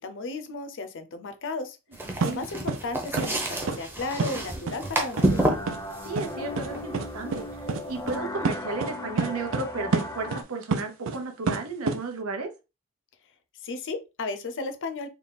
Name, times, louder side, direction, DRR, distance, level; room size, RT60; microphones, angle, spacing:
voice 1, 0.0-1.8 2.2-5.6 13.6-15.1, left 3 dB, 60° left, 0.6 m, -34 dB
sound 1, 1.9-8.1, right 1 dB, 10° right, 0.7 m, -30 dB
voice 2, 2.0-2.5 6.0-7.4 7.9-12.5, right 3 dB, 85° right, 0.9 m, -34 dB
sound 2, 2.2-2.4 2.7-2.8 3.2-3.3 3.7-3.8 4.2-4.3 4.7-4.8 5.2-5.3 5.7-5.8 6.2-6.3 6.6-6.7 6.9-7.1 7.3-7.4 7.7-7.8 8.1-8.2 8.4-8.9 9.2-9.7 9.9-11.2 11.5-12.0, right 4 dB, 65° right, 0.5 m, -27 dB
sound 3, 5.2-10.4, left 1 dB, 15° left, 0.4 m, -37 dB
3.5 x 2.3 x 3.9 m
head